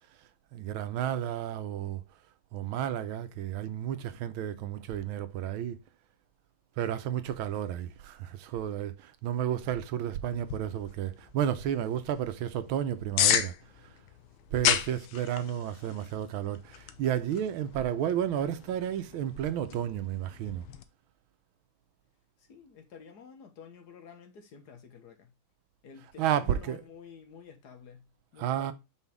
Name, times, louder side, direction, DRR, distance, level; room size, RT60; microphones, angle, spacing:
voice 1, 0.5-2.0 2.5-5.8 6.8-13.9 14.5-20.7 26.2-26.8 28.4-28.7, right 10 dB, 90° right, 1.5 m, -32 dB
sound 1, 10.3-20.8, left 10 dB, 85° left, 1.5 m, -34 dB
voice 2, 22.4-25.3 25.8-28.1 28.3-28.7, left 6 dB, 55° left, 1.7 m, -50 dB
5.6 x 5.0 x 3.4 m
omnidirectional pair, 2.2 m